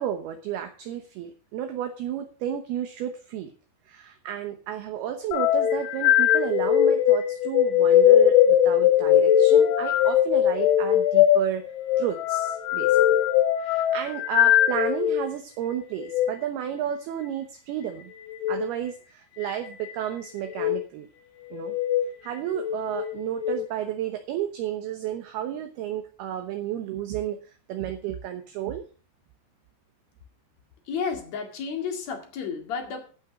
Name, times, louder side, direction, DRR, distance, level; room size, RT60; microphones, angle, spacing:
voice 1, 0.0-3.5 3.9-11.7 12.0-13.0 13.6-18.1 18.5-21.1 21.5-21.8 22.2-27.4 27.7-28.8, right 10 dB, 70° right, 6 dB, 2.7 m, -32 dB
sound 1, 5.3-15.3 16.0-16.3 18.3-18.6 19.4-19.9 20.5-20.8 21.6-22.1 22.5-23.6, left 11 dB, 85° left, 3.6 m, -20 dB
voice 2, 30.8-33.1, left 6 dB, 50° left, 4 dB, 2.6 m, -32 dB
14.5 x 6.3 x 6.2 m, 0.37 s
omnidirectional pair, 5.3 m